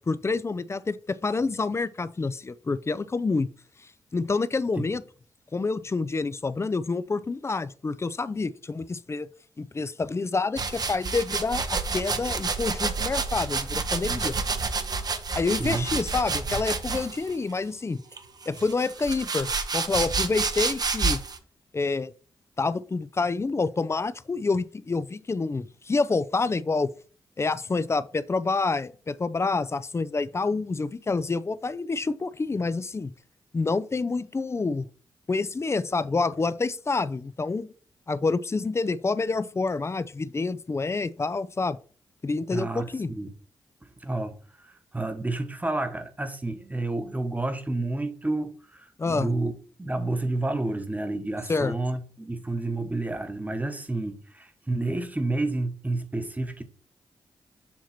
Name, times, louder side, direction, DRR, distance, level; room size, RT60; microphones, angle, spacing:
voice 1, 0.1-3.5 4.1-5.0 5.5-9.3 9.6-14.3 15.3-18.0 18.5-21.2 21.7-22.1 22.6-26.9 27.4-33.1 33.5-34.8 35.3-37.7 38.1-41.8 42.2-43.1 49.0-49.3 51.5-51.7, left 3 dB, 30° left, 0.5 m, -28 dB
sound 1, 10.6-17.3 18.1-21.4, right 4 dB, 50° right, 0.9 m, -29 dB
voice 2, 42.5-43.3 44.0-44.4 44.6-49.5 49.8-56.6, right 2 dB, 20° right, 1.2 m, -30 dB
7.3 x 2.9 x 5.8 m
cardioid pair, 55°, 9 cm